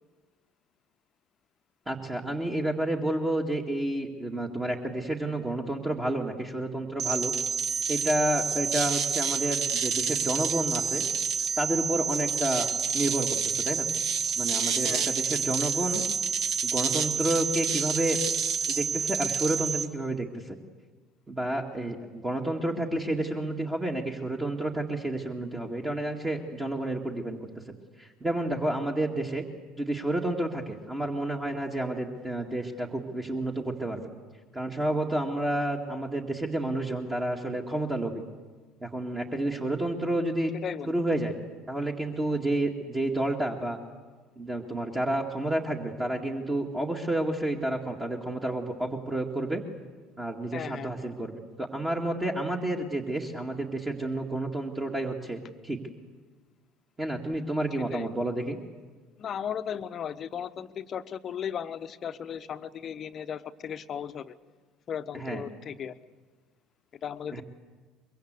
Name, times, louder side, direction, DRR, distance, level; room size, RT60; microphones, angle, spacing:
voice 1, 1.9-7.3 7.9-11.0 11.6-12.7 12.9-13.9 14.4-16.0 16.6-18.2 18.7-20.6 21.3-27.4 28.0-29.4 29.8-34.1 34.5-38.2 38.8-40.5 40.9-41.4 41.7-43.8 44.4-49.6 50.2-55.8 57.0-58.6 65.1-65.4 67.3-67.4, right 1 dB, 15° right, 1 dB, 2.1 m, -30 dB
sound 1, 7.0-19.9, right 6 dB, 50° right, 1.5 m, -28 dB
voice 2, 14.8-15.2 40.6-40.9 50.5-51.1 57.9-58.1 59.2-64.3 64.9-65.9 67.0-67.4, left 8 dB, 35° left, 13 dB, 0.9 m, -36 dB
24.0 x 23.0 x 8.1 m, 1.4 s
figure-of-eight pair, 65°, 0 cm